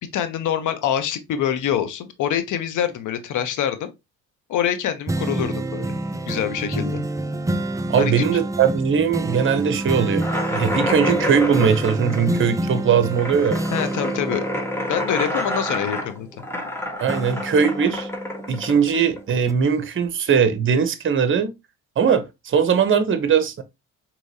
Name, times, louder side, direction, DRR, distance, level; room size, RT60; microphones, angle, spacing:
voice 1, 0.1-3.9 4.5-6.0 6.3-7.0 8.0-8.2 13.7-14.4 14.9-16.3, left 9 dB, 70° left, 0.9 m, -25 dB
sound 1, 5.1-16.7 17.1-19.0 19.5-19.6, right 1 dB, 10° right, 0.4 m, -28 dB
voice 2, 7.9-13.6 17.0-18.1 18.5-21.5 22.0-23.6, right 7 dB, 40° right, 0.8 m, -20 dB
sound 2, 10.2-19.6, left 1 dB, 5° left, 1.4 m, -28 dB
4.7 x 3.0 x 2.7 m
cardioid pair, 80°, 32 cm